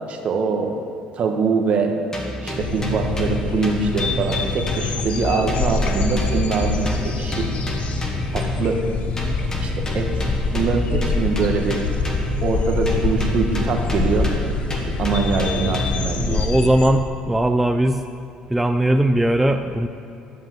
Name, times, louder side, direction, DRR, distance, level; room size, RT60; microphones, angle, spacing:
voice 1, 0.1-0.7 1.1-1.9 2.4-7.5 8.3-8.8 9.6-10.1 10.5-11.8 12.4-14.3 15.0-16.5, right 5 dB, 50° right, 3 dB, 1.5 m, -23 dB
sound 1, 2.1-5.2 5.5-8.8 9.2-12.5 12.9-16.2, equal, 25° left, 1.8 m, -31 dB
sound 2, 2.6-16.9, left 4 dB, 50° left, 0.9 m, -25 dB
voice 2, 16.2-18.0 18.5-19.9, right 1 dB, 5° right, 6 dB, 0.5 m, -19 dB
11.5 x 5.5 x 7.6 m, 2.7 s
supercardioid pair, 95°, 3 cm